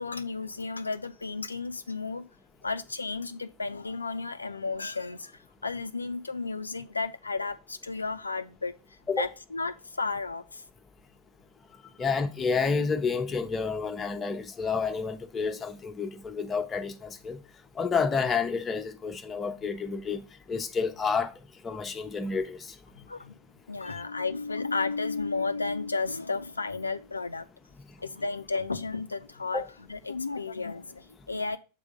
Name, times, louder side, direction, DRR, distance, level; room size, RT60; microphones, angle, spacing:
voice 1, 0.0-2.3 2.6-8.7 9.2-10.6 23.0-23.4 23.7-27.5 28.0-29.6 29.9-31.6, left 4 dB, 80° left, 0.4 m, -33 dB
voice 2, 12.0-17.4 17.8-20.2 20.5-21.3 21.6-22.7 29.5-29.7, left 5 dB, 20° left, 0.8 m, -29 dB
7.3 x 3.6 x 5.1 m
figure-of-eight pair, 90°, 0 cm